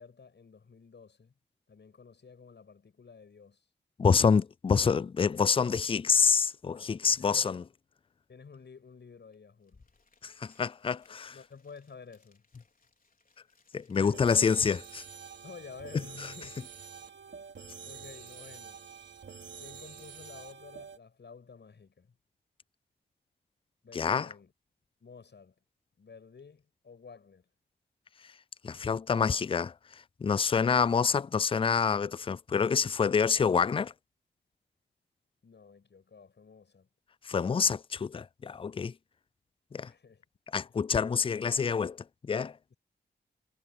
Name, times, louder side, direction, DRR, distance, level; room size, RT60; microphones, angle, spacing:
voice 1, 0.0-1.3 1.7-3.6 6.7-7.6 8.3-9.9 11.1-12.5 14.0-14.3 15.4-16.5 17.8-18.8 19.6-22.1 23.8-24.5 25.0-25.5 26.0-27.5 29.1-29.4 35.4-36.9 39.7-40.2 42.7-42.8, left 5 dB, 65° left, 7.4 m, -51 dB
voice 2, 4.0-7.6 10.2-11.3 13.7-15.0 23.9-24.3 28.6-29.7 30.2-33.9 37.2-38.9 39.7-39.9 40.5-42.6, left 6 dB, 30° left, 0.4 m, -27 dB
sound 1, 9.3-9.4 9.6-15.4, left 3 dB, 50° left, 4.5 m, -68 dB
sound 2, 14.1-21.0, right 6 dB, 75° right, 3.0 m, -47 dB
cardioid pair, 45°, 19 cm